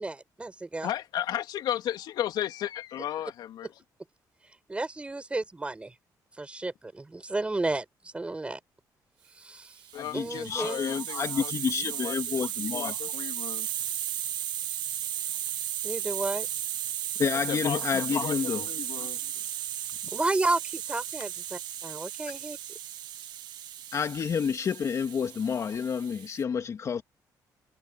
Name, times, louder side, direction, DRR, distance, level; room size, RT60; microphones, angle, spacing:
voice 1, 0.0-0.9 4.7-5.9 6.4-7.8 8.1-8.6 9.4-9.7 10.1-10.8 15.8-16.5 20.1-22.6, right 2 dB, 15° right, 6.7 m, -32 dB
voice 2, 0.8-3.8 9.9-13.7 17.3-19.3, left 11 dB, 85° left, 3.4 m, -35 dB
Hiss, 9.8-26.4, right 11 dB, 80° right, 1.8 m, -35 dB
voice 3, 9.9-13.0 17.2-18.6 23.9-27.0, left 6 dB, 45° left, 2.6 m, -29 dB
cardioid pair, 125°, 7 cm